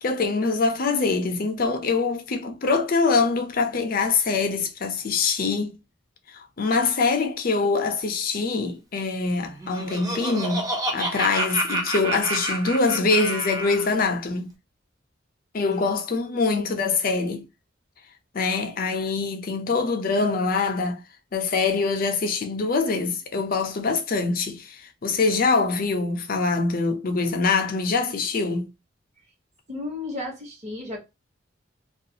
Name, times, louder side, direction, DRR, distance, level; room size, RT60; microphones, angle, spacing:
voice 1, 0.0-5.8 6.3-14.5 15.5-17.5 18.3-21.0 21.3-28.7, left 4 dB, 50° left, 0.5 m, -24 dB
Laughter, 9.4-13.9, right 1 dB, 20° right, 0.6 m, -29 dB
voice 2, 16.3-16.9 29.7-31.0, left 2 dB, 35° right, 1.0 m, -34 dB
2.3 x 2.3 x 2.7 m
head